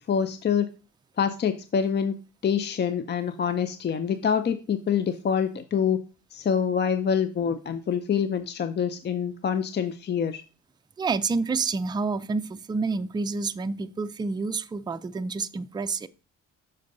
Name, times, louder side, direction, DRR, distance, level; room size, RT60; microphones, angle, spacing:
voice 1, 0.1-0.7 1.2-2.2 2.4-6.0 6.3-10.4, left 7 dB, 35° left, 0.5 m, -26 dB
voice 2, 11.0-16.1, right 4 dB, 15° right, 0.4 m, -28 dB
6.8 x 5.4 x 3.9 m
cardioid pair, 90°, 30 cm